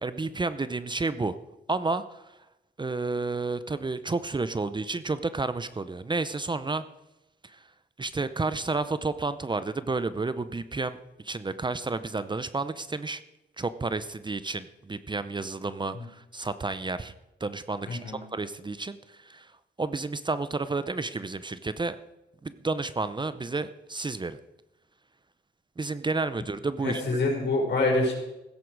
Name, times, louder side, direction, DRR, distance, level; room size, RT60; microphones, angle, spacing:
voice 1, 0.0-1.3 1.7-2.2 2.8-6.8 7.4-7.6 8.0-11.0 11.2-13.2 13.6-17.1 17.4-19.5 19.8-22.0 22.4-24.4 25.8-27.0, right 3 dB, 25° right, 13 dB, 0.7 m, -31 dB
voice 2, 17.9-18.2 26.8-28.1, left 2 dB, 70° left, 0 dB, 5.1 m, -26 dB
15.5 x 13.5 x 4.8 m, 0.96 s
cardioid pair, 80°, 19 cm